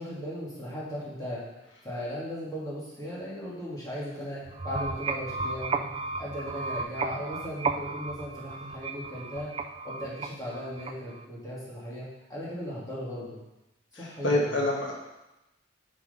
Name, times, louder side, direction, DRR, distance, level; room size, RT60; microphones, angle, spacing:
voice 1, 0.0-1.4 1.8-5.9 6.2-9.5 9.8-13.4 14.0-14.6, equal, 20° left, -8 dB, 2.8 m, -37 dB
sound 1, 4.5-11.2, right 4 dB, 30° right, 0.4 m, -34 dB
voice 2, 13.9-14.9, left 1 dB, 85° left, -1 dB, 1.3 m, -27 dB
6.4 x 5.8 x 5.4 m, 0.95 s
head